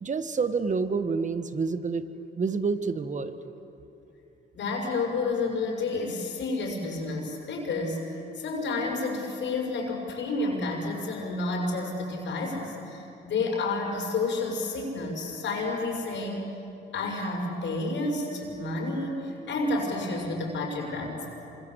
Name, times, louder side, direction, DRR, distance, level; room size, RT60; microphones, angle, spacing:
voice 1, 0.0-2.1 2.4-3.4, right 4 dB, 40° right, 11 dB, 1.6 m, -28 dB
voice 2, 4.5-16.4 16.9-21.3, left 3 dB, 65° left, 0 dB, 6.4 m, -30 dB
27.0 x 25.5 x 8.3 m, 2.9 s
cardioid pair, 90°, 20 cm